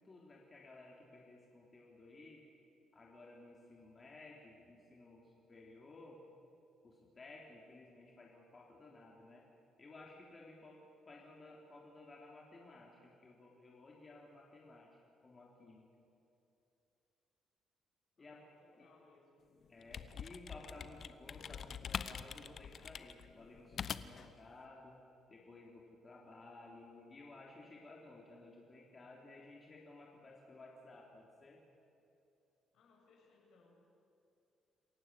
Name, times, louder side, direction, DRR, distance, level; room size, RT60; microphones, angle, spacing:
voice 1, 0.0-2.4 2.9-6.2 6.8-9.4 9.8-10.8 11.0-15.9 18.2-18.4 18.7-18.9 19.7-25.0 25.3-31.6, left 2 dB, 30° left, -2 dB, 3.4 m, -56 dB
voice 2, 18.2-19.4 32.7-33.8, left 3 dB, 70° left, 0 dB, 6.8 m, -67 dB
sound 1, 19.6-24.3, left 7 dB, 50° left, 0.8 m, -44 dB
27.5 x 15.5 x 8.4 m, 2.7 s
cardioid pair, 100°, 0 cm